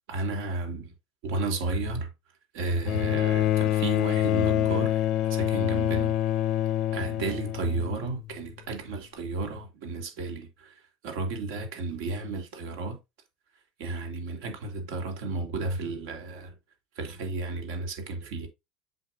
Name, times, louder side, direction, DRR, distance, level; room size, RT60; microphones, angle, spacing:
voice 1, 0.1-0.9 1.2-2.1 2.5-6.1 6.9-10.7 11.0-13.0 13.8-16.5 17.0-18.5, right 3 dB, 70° right, 3.0 m, -33 dB
Bowed string instrument, 2.9-8.3 9.4-9.5, left 12 dB, 45° left, 0.5 m, -26 dB
8.0 x 5.5 x 2.5 m
cardioid pair, 155°, 0 cm